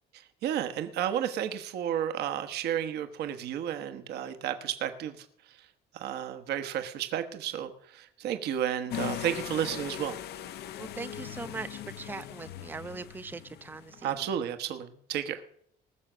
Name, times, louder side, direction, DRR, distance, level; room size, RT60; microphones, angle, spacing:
voice 1, 0.4-5.2 5.9-10.2 14.0-15.4, right 10 dB, 75° right, 7 dB, 1.2 m, -32 dB
sound 1, 8.9-14.3, left 11 dB, 75° left, 0.9 m, -40 dB
voice 2, 10.8-14.1, right 4 dB, 10° right, 13 dB, 0.5 m, -41 dB
19.5 x 6.6 x 6.1 m, 0.66 s
cardioid pair, 110°, 17 cm